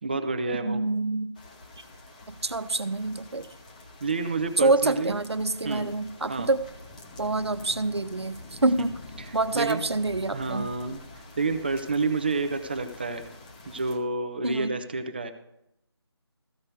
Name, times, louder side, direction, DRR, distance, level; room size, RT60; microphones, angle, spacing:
voice 1, 0.0-0.8 4.0-5.1 5.6-5.9 6.3-6.5 9.2-9.8 10.3-13.2 13.7-15.3, right 3 dB, 20° right, 8 dB, 0.6 m, -29 dB
voice 2, 0.5-1.3 1.8-1.9 2.3-3.5 4.6-6.6 7.2-9.0 9.3-10.7 14.4-14.8, right 2 dB, 70° right, 10 dB, 1.0 m, -27 dB
sound 1, 1.3-14.0, left 2 dB, 15° left, 1.0 m, -47 dB
14.5 x 5.3 x 7.7 m, 0.81 s
figure-of-eight pair, 160°, 14 cm